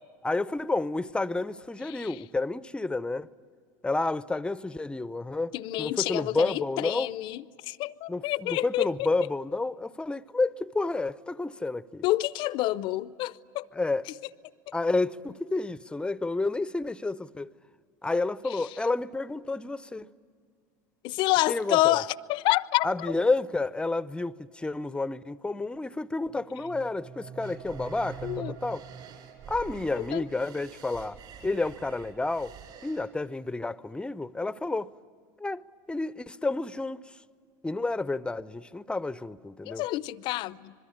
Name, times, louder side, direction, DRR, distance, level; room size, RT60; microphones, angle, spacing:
voice 1, 0.2-3.3 3.8-5.5 5.8-7.1 8.1-12.0 13.7-14.1 14.7-17.5 18.0-20.1 21.5-22.0 22.8-28.8 29.5-32.5 32.8-34.9 35.4-37.2 37.6-39.8, left 3 dB, 10° left, 0.6 m, -30 dB
voice 2, 5.5-8.9 12.0-13.6 21.0-22.9 28.2-28.6 30.1-30.2 39.6-40.7, left 17 dB, 55° left, 0.6 m, -28 dB
sound 1, 26.3-30.2, right 7 dB, 30° right, 0.8 m, -45 dB
sound 2, 27.4-33.1, right 8 dB, 55° right, 6.5 m, -48 dB
26.5 x 22.0 x 9.8 m
hypercardioid pair, 85°, 10 cm